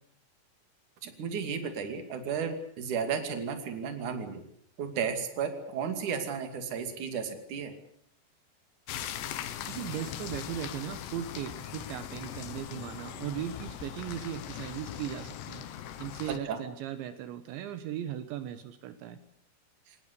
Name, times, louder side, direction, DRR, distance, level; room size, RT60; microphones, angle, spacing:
voice 1, 1.0-4.4 4.8-7.7 16.3-16.6, right 6 dB, 45° right, 7 dB, 3.5 m, -33 dB
sound 1, 8.9-16.4, left 10 dB, 70° left, 3.4 m, -40 dB
voice 2, 9.7-15.6 16.0-19.2, right 11 dB, 80° right, 10 dB, 3.4 m, -38 dB
24.0 x 19.0 x 8.2 m, 0.69 s
omnidirectional pair, 5.4 m